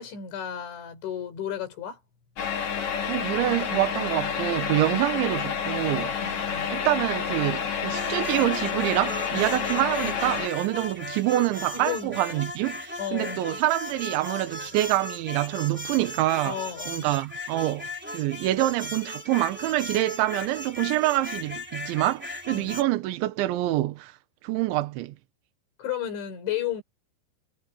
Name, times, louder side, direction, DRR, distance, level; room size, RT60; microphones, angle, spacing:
voice 1, 0.0-2.0 6.2-6.8 11.7-12.4 13.0-13.5 16.4-17.1 22.5-22.8 25.8-26.8, left 9 dB, 80° left, 7.3 m, -33 dB
sound 1, 2.4-10.5, left 7 dB, 45° left, 3.4 m, -29 dB
voice 2, 3.1-6.2 6.7-16.6 16.9-24.2 24.4-25.2, right 16 dB, 80° right, 3.5 m, -26 dB
sound 2, 7.9-22.8, left 1 dB, 5° right, 2.5 m, -37 dB
omnidirectional pair, 5.3 m